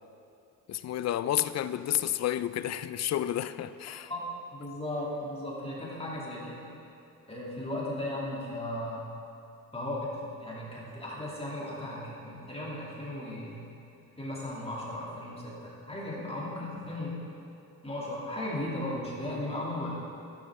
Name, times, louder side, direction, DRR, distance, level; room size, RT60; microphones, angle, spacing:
voice 1, 0.7-4.1, left 11 dB, 50° left, 0.4 m, -30 dB
voice 2, 4.1-6.6 7.3-9.0 9.7-13.6 14.2-17.3 17.8-19.9, left 1 dB, 15° left, 2.4 m, -36 dB
11.5 x 9.5 x 3.6 m
cardioid pair, 70°, 34 cm